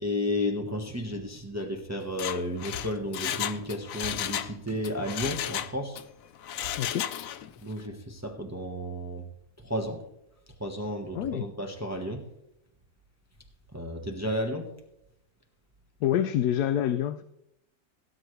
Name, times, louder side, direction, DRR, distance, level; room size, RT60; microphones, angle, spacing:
voice 1, 0.0-6.0 7.6-9.2 9.6-10.0 10.6-12.2 13.7-14.7, left 1 dB, 10° right, 3 dB, 1.1 m, -32 dB
Mechanisms, 2.0-4.5 4.8-6.0 6.4-7.5 7.8-7.9, left 11 dB, 70° left, 1.0 m, -33 dB
voice 2, 6.8-7.1 11.1-11.5 16.0-17.2, left 10 dB, 90° left, 12 dB, 1.1 m, -27 dB
17.5 x 9.4 x 3.2 m, 0.81 s
omnidirectional pair, 1.6 m